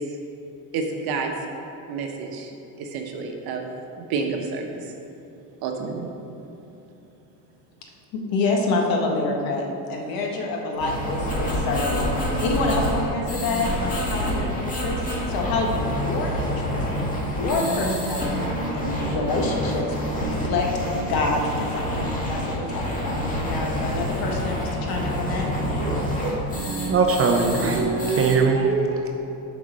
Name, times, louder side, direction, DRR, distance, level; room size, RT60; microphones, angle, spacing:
voice 1, 0.7-1.3 1.9-2.5 2.8-3.7 4.0-4.9 5.6-6.1, right 4 dB, 60° right, 3 dB, 1.2 m, -29 dB
voice 2, 8.1-15.0 15.3-16.8 17.3-18.4 18.7-19.9 20.2-20.7 21.0-25.5, left 2 dB, 55° left, 1 dB, 1.5 m, -27 dB
sound 1, 10.8-28.4, equal, 20° left, 1.8 m, -27 dB
voice 3, 25.8-29.1, right 4 dB, 30° right, 3 dB, 0.7 m, -22 dB
6.7 x 5.3 x 6.6 m, 2.9 s
supercardioid pair, 125°, 43 cm